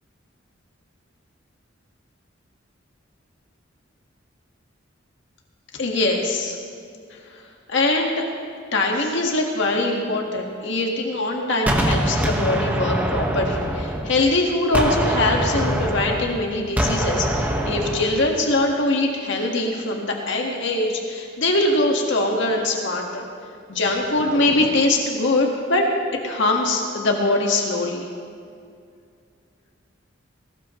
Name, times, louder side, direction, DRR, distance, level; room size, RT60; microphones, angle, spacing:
voice 1, 5.8-6.6 7.7-8.3 8.7-23.3 23.7-25.9 26.2-28.0, left 2 dB, 65° left, 1 dB, 1.8 m, -22 dB
Gunshot gunfire, 11.7-14.4 14.7-18.3, equal, 10° right, 1.5 m, -24 dB
20.5 x 18.5 x 3.2 m, 2.3 s
head